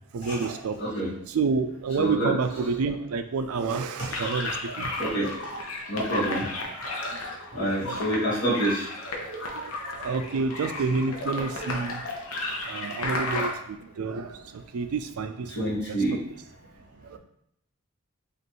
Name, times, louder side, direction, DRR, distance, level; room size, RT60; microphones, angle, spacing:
voice 1, 0.1-0.8 1.3-4.9 5.5-5.6 7.1-8.1 9.3-12.0 12.7-16.1 17.0-17.2, right 4 dB, 85° right, 8 dB, 0.4 m, -30 dB
voice 2, 0.8-1.1 2.0-2.3 5.0-5.3 5.9-6.4 7.5-8.9 15.5-16.2, right 1 dB, 55° left, -7 dB, 1.6 m, -27 dB
sound 1, 4.1-13.5, left 2 dB, 80° left, 0.8 m, -33 dB
5.1 x 2.5 x 3.0 m, 0.74 s
head